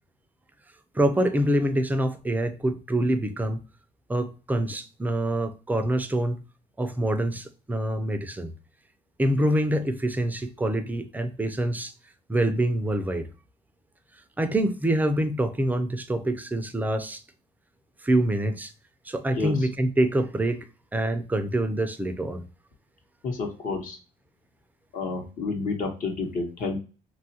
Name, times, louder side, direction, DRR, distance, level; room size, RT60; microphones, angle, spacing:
voice 1, 0.9-3.6 4.1-6.4 6.8-8.5 9.2-11.9 12.3-13.3 14.4-17.2 18.0-18.7 19.1-20.7 20.9-22.5, right 1 dB, 10° right, 0.4 m, -25 dB
voice 2, 23.2-24.0 24.9-26.8, left 4 dB, 55° left, 0.9 m, -30 dB
2.9 x 2.3 x 2.7 m
cardioid pair, 110°, 17 cm